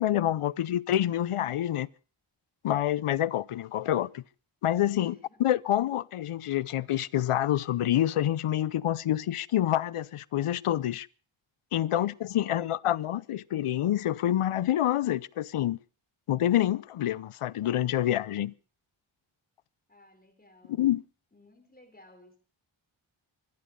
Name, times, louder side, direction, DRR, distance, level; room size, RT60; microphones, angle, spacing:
voice 1, 0.0-1.9 2.6-4.2 4.6-5.1 5.4-11.1 11.7-15.8 16.3-18.5 20.7-21.0, left 12 dB, 85° left, 0.6 m, -27 dB
voice 2, 0.6-0.9 5.0-5.4 11.9-12.7 19.9-20.9 21.3-22.3, left 1 dB, 20° left, 4.1 m, -57 dB
24.5 x 10.5 x 5.1 m
wide cardioid pair, 125°, 50 cm